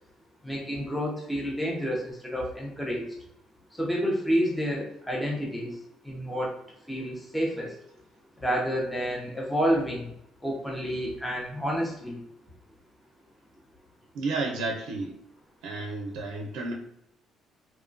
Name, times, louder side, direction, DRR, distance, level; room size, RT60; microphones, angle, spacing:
voice 1, 0.4-3.1 3.7-5.8 6.0-7.8 8.4-10.1 10.4-12.2, equal, 5° left, -2 dB, 0.5 m, -29 dB
voice 2, 14.1-15.1 15.6-16.7, right 3 dB, 85° right, 0 dB, 0.5 m, -31 dB
3.0 x 2.2 x 2.5 m, 0.75 s
cardioid pair, 175°, 0 cm